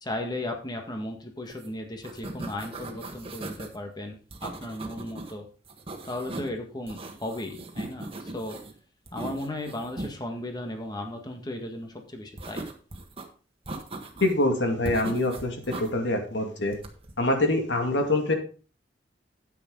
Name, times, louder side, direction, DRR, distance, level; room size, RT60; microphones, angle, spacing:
voice 1, 0.0-5.5 6.0-8.6 9.1-12.6, left 1 dB, 20° left, 4 dB, 1.8 m, -36 dB
sound 1, 1.5-1.7 1.9-3.7 4.3-5.3 5.6-6.6 6.9-8.7 9.1-10.1 12.4-13.2 13.7-14.4 14.8-15.9 16.7-17.1, right 2 dB, 30° right, 1.6 m, -38 dB
voice 2, 14.2-16.8 17.2-18.3, left 2 dB, 75° left, 4 dB, 2.3 m, -25 dB
10.0 x 9.0 x 4.0 m, 0.37 s
head